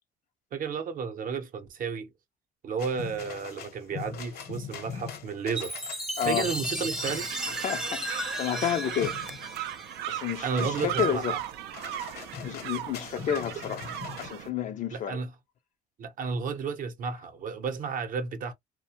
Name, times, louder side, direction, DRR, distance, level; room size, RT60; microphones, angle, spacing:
voice 1, 0.5-2.1 2.6-7.5 10.1-11.4 14.9-15.3 16.0-18.5, right 5 dB, 55° right, 0.7 m, -33 dB
sound 1, 2.8-14.3, left 7 dB, 65° left, 0.9 m, -42 dB
Chime, 5.6-10.2, right 1 dB, 5° right, 0.6 m, -35 dB
voice 2, 6.2-6.5 7.6-9.2 10.1-11.4 12.4-13.9 14.2-15.2, left 9 dB, 45° left, 0.4 m, -30 dB
sound 2, 7.0-14.5, right 12 dB, 80° right, 0.4 m, -37 dB
2.4 x 2.2 x 2.8 m
cardioid pair, 110°, 17 cm